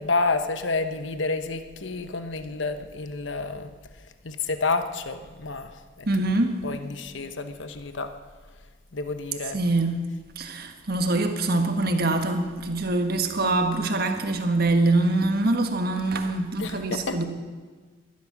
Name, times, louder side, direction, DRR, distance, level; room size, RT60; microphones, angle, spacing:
voice 1, 0.0-3.7 4.2-6.1 6.6-8.1 8.9-9.6 16.6-17.2, left 3 dB, 75° left, 1.0 m, -29 dB
voice 2, 6.1-6.6 9.5-10.0 10.4-17.2, right 2 dB, 55° right, 1.5 m, -24 dB
21.5 x 11.5 x 6.0 m
head